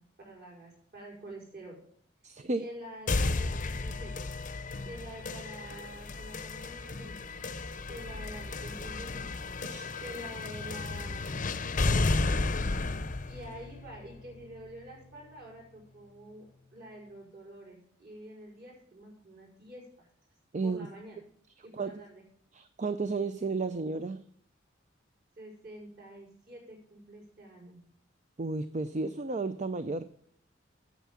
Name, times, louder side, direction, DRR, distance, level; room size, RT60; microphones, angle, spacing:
voice 1, 0.0-1.8 2.6-4.3 4.8-7.3 7.9-9.6 10.0-12.9 13.3-20.1 20.6-21.2 21.6-22.2 25.4-27.8, right 1 dB, 55° right, -1 dB, 5.5 m, -47 dB
voice 2, 2.2-2.7 9.6-9.9 20.5-20.9 21.8-22.0 22.5-24.2 28.4-30.0, right 3 dB, 35° right, 12 dB, 0.5 m, -33 dB
sound 1, 3.1-15.0, left 3 dB, 40° left, 0.7 m, -33 dB
9.2 x 7.4 x 7.2 m, 0.66 s
head